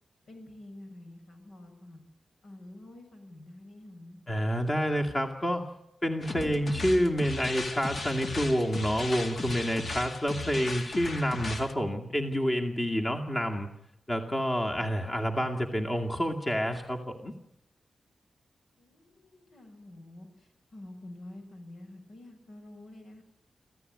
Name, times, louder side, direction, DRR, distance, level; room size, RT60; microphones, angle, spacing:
voice 1, 0.3-2.0 2.4-4.2 18.8-23.2, left 1 dB, 70° left, 5 dB, 7.5 m, -48 dB
voice 2, 4.3-5.7 6.0-13.7 14.1-17.3, equal, 20° left, 2 dB, 2.2 m, -28 dB
sound 1, 6.2-11.7, left 2 dB, 50° left, 2.2 m, -37 dB
26.0 x 15.5 x 9.6 m, 0.82 s
wide cardioid pair, 120°, 0 cm